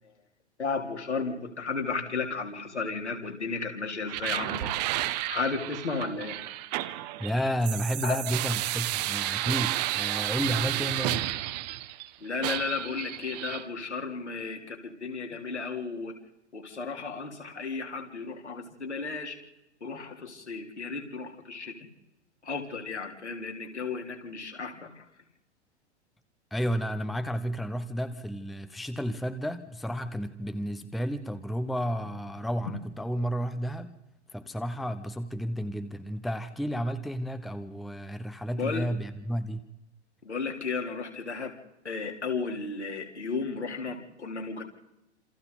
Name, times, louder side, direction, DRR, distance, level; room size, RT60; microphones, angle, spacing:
voice 1, 0.6-4.8 5.3-6.4 8.0-8.2 12.2-16.1 16.5-19.4 19.8-21.7 22.4-25.0 38.6-38.9 40.2-41.5 41.8-44.6, left 4 dB, 75° left, 2 dB, 3.8 m, -34 dB
sound 1, 4.1-12.1 12.4-13.6, right 16 dB, 35° right, 1.1 m, -32 dB
voice 2, 7.2-11.3 26.5-34.0 34.3-39.7, equal, ahead, 11 dB, 0.7 m, -32 dB
29.0 x 27.5 x 4.0 m, 0.91 s
figure-of-eight pair, 105°, 34 cm